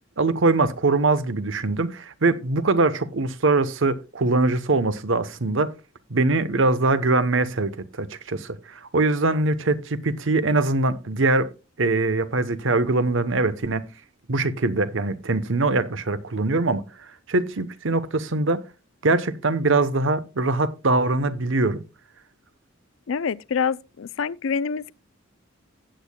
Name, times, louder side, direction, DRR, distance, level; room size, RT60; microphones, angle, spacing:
voice 1, 0.2-5.7 6.1-11.5 11.8-13.9 14.3-16.8 17.3-18.6 19.0-21.8, right 3 dB, 70° right, 0.9 m, -22 dB
voice 2, 23.1-24.9, left 6 dB, 75° left, 0.4 m, -26 dB
15.5 x 8.4 x 2.2 m
head